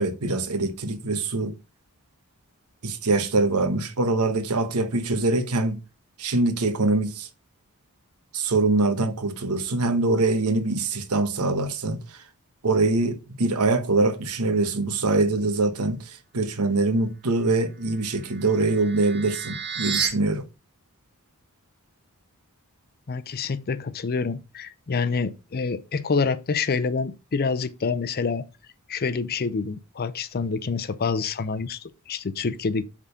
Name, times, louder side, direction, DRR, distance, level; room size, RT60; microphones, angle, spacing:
voice 1, 0.0-1.5 2.8-5.8 6.2-7.3 8.3-12.2 12.6-20.4, right 2 dB, 80° right, 1.1 m, -24 dB
sound 1, 17.8-20.1, right 7 dB, 50° right, 1.7 m, -31 dB
voice 2, 23.1-28.4 28.9-32.8, left 4 dB, 45° left, 0.5 m, -27 dB
7.2 x 3.8 x 5.6 m
head